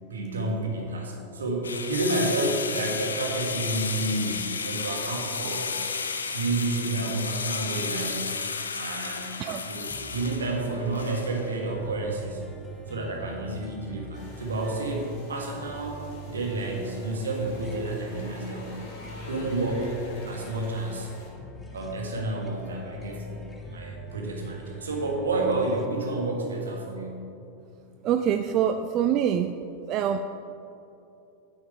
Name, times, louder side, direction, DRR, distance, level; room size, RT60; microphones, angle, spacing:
voice 1, 0.1-5.7 6.3-8.3 8.7-9.3 9.7-12.4 12.9-18.8 19.2-20.0 20.2-21.1 21.7-27.2, right 2 dB, 70° right, 0 dB, 1.5 m, -30 dB
sound 1, 1.6-11.6, left 5 dB, 70° left, 0.5 m, -33 dB
sound 2, 9.5-25.9, equal, 10° left, 0.8 m, -43 dB
sound 3, 14.1-21.3, equal, 50° left, 1.7 m, -44 dB
voice 2, 28.0-29.5 29.9-30.2, right 9 dB, 35° right, 8 dB, 0.3 m, -25 dB
9.7 x 7.9 x 3.6 m, 2.8 s
figure-of-eight pair, 90°, 0 cm